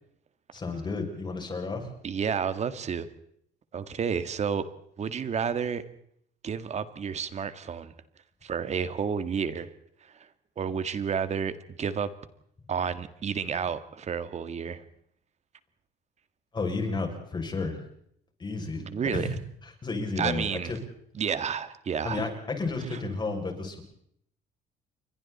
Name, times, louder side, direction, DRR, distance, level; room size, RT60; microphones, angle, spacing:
voice 1, 0.5-1.9 16.5-17.8 18.4-18.9 19.1-19.4 19.6-20.8 22.0-23.8, left 3 dB, 25° left, 3 dB, 7.0 m, -32 dB
voice 2, 2.0-3.1 3.7-4.7 5.0-5.8 6.4-7.9 8.4-9.7 10.1-10.3 10.6-12.1 12.7-14.8 18.8-19.3 20.2-20.7 21.1-22.3 22.9-23.0, right 7 dB, 40° right, 12 dB, 1.9 m, -30 dB
29.5 x 24.0 x 4.3 m, 0.69 s
cardioid pair, 110°, 17 cm